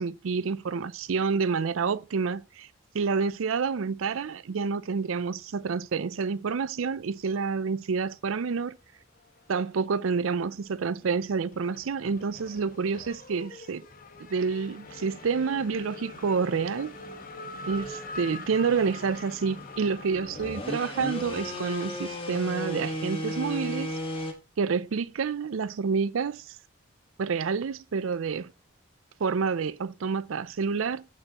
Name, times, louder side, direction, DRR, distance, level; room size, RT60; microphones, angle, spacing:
voice 1, 0.0-2.7 2.9-8.8 9.5-13.8 14.2-16.9 17.7-23.9 24.6-26.4 27.2-28.5 29.2-31.1, right 5 dB, 80° right, 0.5 m, -28 dB
Race car auto racing / Accelerating revving vroom, 9.2-10.2 10.5-24.2, left 3 dB, 40° left, 1.1 m, -45 dB
sound 1, 14.9-24.3, equal, 25° left, 1.5 m, -37 dB
15.0 x 5.6 x 3.0 m
head